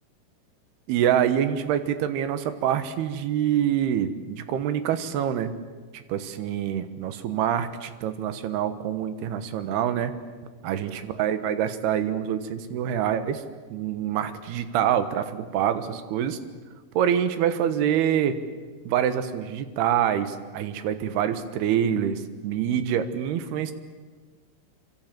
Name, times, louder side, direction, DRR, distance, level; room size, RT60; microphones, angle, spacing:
voice 1, 0.9-5.5 5.9-10.1 10.6-13.4 13.7-16.4 16.9-18.4 18.9-23.7, right 9 dB, 65° right, 10 dB, 2.9 m, -26 dB
27.0 x 25.5 x 7.6 m, 1.4 s
omnidirectional pair, 5.7 m